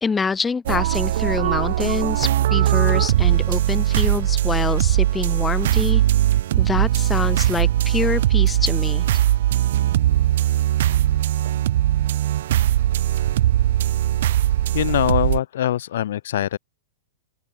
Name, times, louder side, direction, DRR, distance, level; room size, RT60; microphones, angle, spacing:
voice 1, 0.0-6.0 6.6-9.1, left 5 dB, 15° left, 2.0 m, -26 dB
sound 1, 0.7-15.4, right 13 dB, 65° right, 0.9 m, -20 dB
voice 2, 14.7-16.6, left 12 dB, 70° left, 0.6 m, -22 dB
open air
hypercardioid pair, 135°, 0 cm